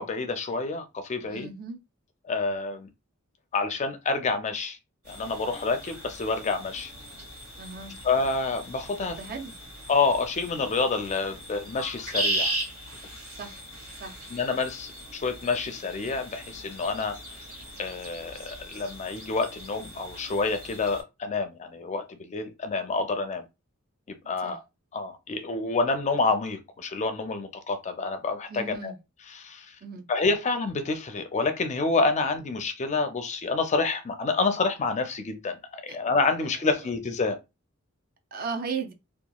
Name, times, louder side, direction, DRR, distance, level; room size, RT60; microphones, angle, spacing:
voice 1, 0.0-1.5 2.2-2.9 3.5-4.8 5.1-6.9 8.0-9.2 9.9-12.5 14.3-17.2 17.8-23.5 24.3-24.6 24.9-28.9 29.3-29.8 30.1-37.4, left 4 dB, 35° left, 0.4 m, -28 dB
voice 2, 1.2-1.8 7.6-7.9 9.0-9.5 13.4-13.7 14.0-14.2 24.4-24.6 28.5-29.0 29.8-30.1 35.9-36.0 38.3-38.9, right 5 dB, 45° right, 0.4 m, -36 dB
sound 1, 5.0-21.0, right 1 dB, 80° right, 1.6 m, -38 dB
2.8 x 2.3 x 2.3 m
head